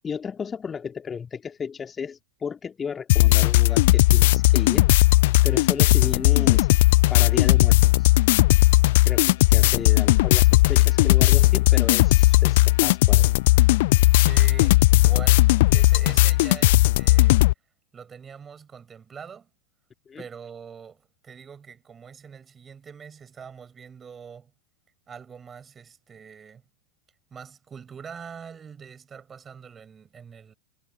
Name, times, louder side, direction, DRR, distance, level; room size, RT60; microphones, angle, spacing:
voice 1, 0.0-4.9 5.4-6.8 7.1-8.1 9.0-13.3 20.1-20.2, left 6 dB, 20° left, 2.1 m, -34 dB
sound 1, 3.1-17.5, left 19 dB, 50° left, 0.4 m, -17 dB
voice 2, 14.1-17.4 17.9-19.5 20.2-24.5 25.1-26.6 27.3-30.5, right 7 dB, 20° right, 6.3 m, -43 dB
figure-of-eight pair, 90°, 0 cm